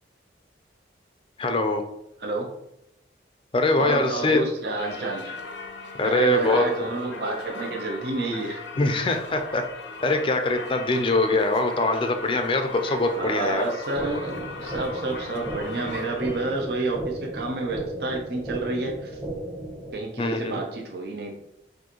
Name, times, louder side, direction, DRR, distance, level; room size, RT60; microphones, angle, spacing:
voice 1, 1.4-1.8 3.5-4.4 6.0-6.6 8.8-9.6 10.0-13.6 20.2-20.6, left 2 dB, 30° left, 6 dB, 0.5 m, -23 dB
voice 2, 3.8-5.4 6.0-8.6 13.1-19.2 19.9-21.3, right 2 dB, 60° right, 0 dB, 0.8 m, -30 dB
Singing / Church bell, 4.8-16.7, left 3 dB, 85° left, 0.7 m, -39 dB
sound 1, 14.0-20.0, right 1 dB, 15° right, 1.0 m, -35 dB
6.2 x 2.6 x 3.0 m, 0.82 s
head